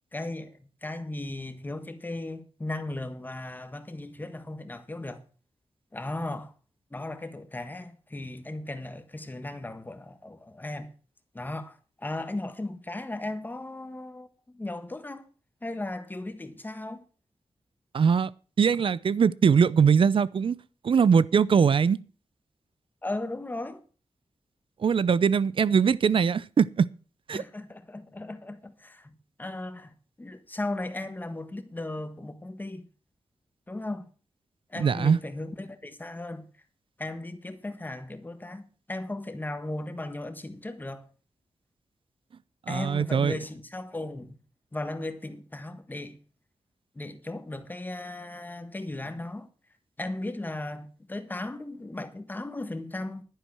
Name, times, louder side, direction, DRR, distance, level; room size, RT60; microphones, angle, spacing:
voice 1, 0.1-5.2 5.9-6.5 6.9-10.9 11.3-15.3 15.6-17.0 23.0-23.8 27.3-29.1 29.4-32.9 33.7-34.0 34.7-36.5 37.0-41.1 42.7-44.4 44.7-46.2 46.9-49.5 50.0-53.2, left 2 dB, 20° left, 1.5 m, -36 dB
voice 2, 17.9-18.3 18.6-20.6 20.8-22.0 24.8-26.9 27.3-27.4 34.8-35.2 42.7-43.4, right 6 dB, 55° right, 0.6 m, -21 dB
11.5 x 10.0 x 6.2 m
wide cardioid pair, 125°, 10 cm